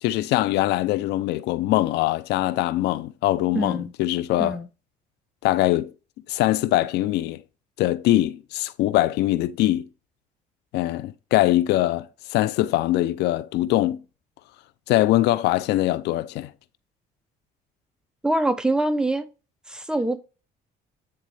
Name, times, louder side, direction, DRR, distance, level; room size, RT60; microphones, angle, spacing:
voice 1, 0.0-4.6 5.4-5.9 6.3-7.4 7.8-9.9 10.7-14.0 14.9-16.5, left 15 dB, 85° left, 0.5 m, -22 dB
voice 2, 3.5-3.9 4.4-4.7 18.2-19.2 19.7-20.2, right 1 dB, 5° right, 0.9 m, -24 dB
9.8 x 4.1 x 3.3 m
cardioid pair, 110°, 17 cm